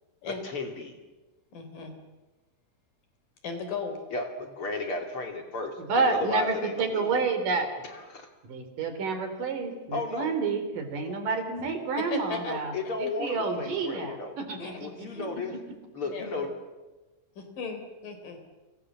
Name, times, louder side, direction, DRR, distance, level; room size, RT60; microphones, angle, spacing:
voice 1, 0.2-1.0 4.1-7.3 7.8-8.3 9.9-10.3 11.1-11.2 12.5-14.4 14.8-15.6 15.9-16.5, left 3 dB, 40° left, 4 dB, 3.4 m, -34 dB
voice 2, 1.5-1.9 3.4-4.0 12.0-12.6 14.6-14.8 15.1-15.3 16.0-16.5 17.4-18.4, left 5 dB, 65° left, 7 dB, 5.3 m, -36 dB
voice 3, 5.9-7.7 8.4-15.1, right 4 dB, 65° right, 8 dB, 5.0 m, -29 dB
29.5 x 25.5 x 7.5 m, 1.2 s
omnidirectional pair, 4.1 m